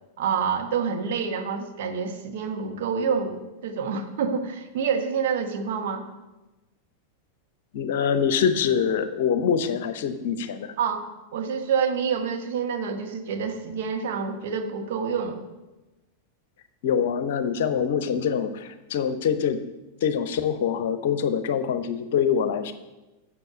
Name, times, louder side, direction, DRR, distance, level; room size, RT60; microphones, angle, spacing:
voice 1, 0.2-6.1 10.8-15.4, right 6 dB, 55° right, 5 dB, 1.2 m, -27 dB
voice 2, 7.7-10.7 16.8-19.6 20.0-22.7, left 7 dB, 55° left, 11 dB, 0.7 m, -24 dB
7.9 x 6.7 x 7.3 m, 1.1 s
figure-of-eight pair, 90°, 0 cm